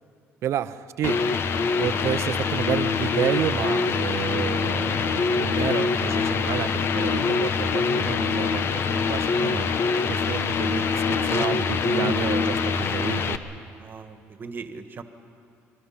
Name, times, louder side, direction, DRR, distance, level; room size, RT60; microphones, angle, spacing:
voice 1, 0.4-1.2 1.8-9.7 10.1-13.4, right 10 dB, 65° right, 13 dB, 0.7 m, -30 dB
sound 1, 1.0-13.4, left 5 dB, 55° left, 1.0 m, -24 dB
voice 2, 13.8-15.0, right 4 dB, 40° right, 8 dB, 1.5 m, -39 dB
27.5 x 21.0 x 5.9 m, 2.5 s
cardioid pair, 100°, 5 cm